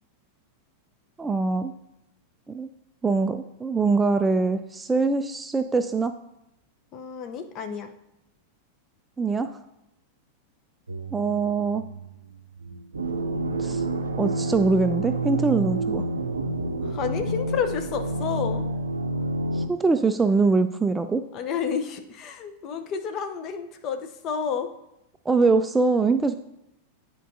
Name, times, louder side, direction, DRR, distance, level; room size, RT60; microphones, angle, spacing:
voice 1, 1.2-1.7 2.5-2.7 3.0-6.1 9.2-9.6 11.1-11.9 13.6-13.8 14.2-16.0 19.5-21.2 25.3-26.3, right 3 dB, 10° right, 9 dB, 0.3 m, -23 dB
voice 2, 6.9-7.9 16.8-18.6 21.3-24.7, left 7 dB, 35° left, 7 dB, 0.7 m, -30 dB
sound 1, 10.9-19.7, right 2 dB, 75° right, 0.5 m, -29 dB
9.9 x 4.6 x 2.6 m, 0.85 s
figure-of-eight pair, 90°, 0 cm